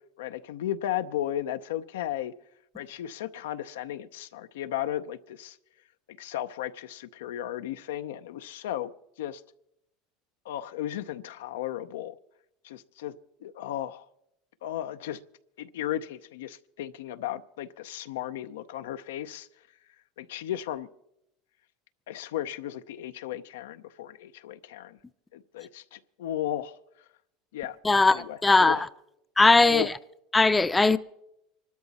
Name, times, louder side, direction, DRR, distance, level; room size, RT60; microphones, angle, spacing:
voice 1, 0.2-2.3 2.7-5.6 6.1-8.9 9.2-9.4 10.4-12.2 12.6-13.1 13.4-14.1 14.6-15.2 15.6-19.5 20.2-20.9 22.1-25.0 25.3-26.8 27.5-27.8 28.1-28.9 29.7-29.9, left 12 dB, 90° left, 0.6 m, -35 dB
voice 2, 27.8-28.9 29.4-29.9 30.3-31.0, left 3 dB, 15° left, 0.5 m, -20 dB
24.5 x 12.5 x 4.1 m
supercardioid pair, 105°, 0 cm